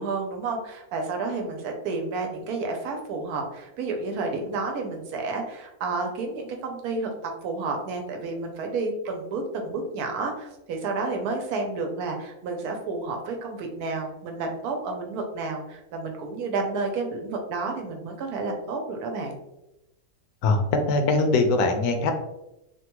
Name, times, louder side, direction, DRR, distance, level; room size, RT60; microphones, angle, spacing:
voice 1, 0.0-19.4, right 3 dB, 80° right, 3 dB, 1.1 m, -30 dB
voice 2, 20.4-22.1, left 3 dB, 80° left, 5 dB, 1.1 m, -22 dB
3.2 x 2.2 x 2.9 m, 0.92 s
omnidirectional pair, 1.6 m